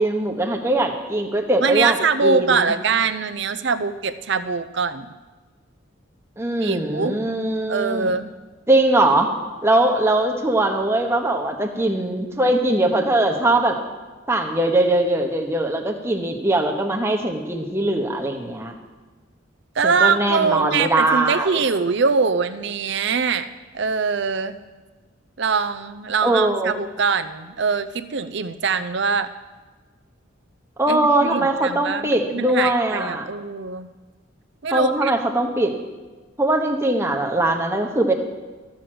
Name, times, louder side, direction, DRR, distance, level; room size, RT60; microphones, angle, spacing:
voice 1, 0.0-2.7 6.4-8.1 8.7-9.3 9.6-13.8 14.3-18.7 19.8-21.6 26.2-26.7 30.8-33.2 34.7-35.7 36.4-38.1, right 1 dB, 10° right, 2 dB, 1.1 m, -21 dB
voice 2, 1.6-5.1 6.6-7.2 7.7-8.3 19.7-23.5 23.7-24.6 25.4-29.3 30.9-33.9 34.6-35.1, right 5 dB, 60° right, 11 dB, 0.6 m, -23 dB
13.5 x 6.4 x 7.7 m, 1.3 s
head